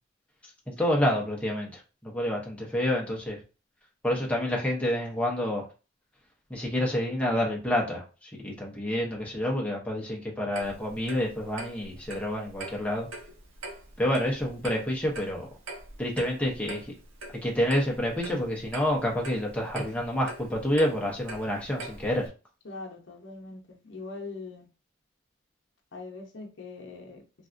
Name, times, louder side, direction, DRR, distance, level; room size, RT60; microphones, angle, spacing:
voice 1, 0.7-3.4 4.0-5.7 6.5-13.1 14.0-15.5 16.0-16.8 17.4-22.3, left 1 dB, 5° left, -2 dB, 0.6 m, -28 dB
Clock, 10.5-22.3, right 2 dB, 85° right, 0.8 m, -43 dB
voice 2, 22.6-24.7 25.9-27.2, left 3 dB, 65° left, 1 dB, 0.8 m, -41 dB
3.3 x 2.5 x 2.5 m, 0.32 s
head